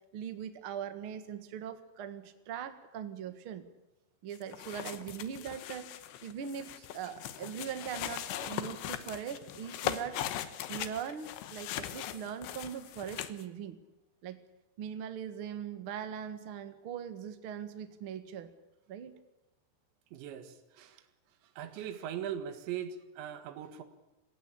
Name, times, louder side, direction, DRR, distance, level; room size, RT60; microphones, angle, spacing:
voice 1, 0.1-3.6 4.2-5.9 6.2-10.2 10.7-13.8 14.2-14.4 14.8-18.5 18.9-19.1, right 8 dB, 70° right, 9 dB, 1.2 m, -41 dB
sound 1, 4.3-13.4, left 12 dB, 90° left, 3.5 m, -40 dB
voice 2, 20.1-21.0 21.6-23.8, right 9 dB, 85° right, 9 dB, 4.1 m, -40 dB
26.5 x 16.5 x 8.6 m, 1.0 s
omnidirectional pair, 5.1 m